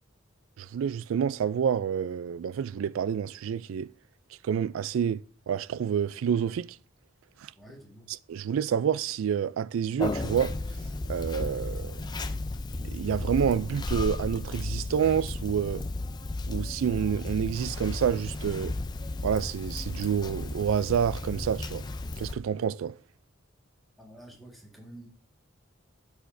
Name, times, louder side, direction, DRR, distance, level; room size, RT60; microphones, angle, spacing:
voice 1, 0.6-3.9 4.4-5.2 5.5-6.8 7.4-7.5 8.3-10.5 11.1-12.0 12.8-15.8 16.5-18.7 19.2-21.8 22.2-22.9, right 8 dB, 75° right, 0.3 m, -28 dB
voice 2, 7.5-8.1 24.0-25.1, right 1 dB, ahead, 1.6 m, -49 dB
Conversation, 10.0-22.4, left 2 dB, 20° left, 0.4 m, -34 dB
13.0 x 4.9 x 2.6 m
head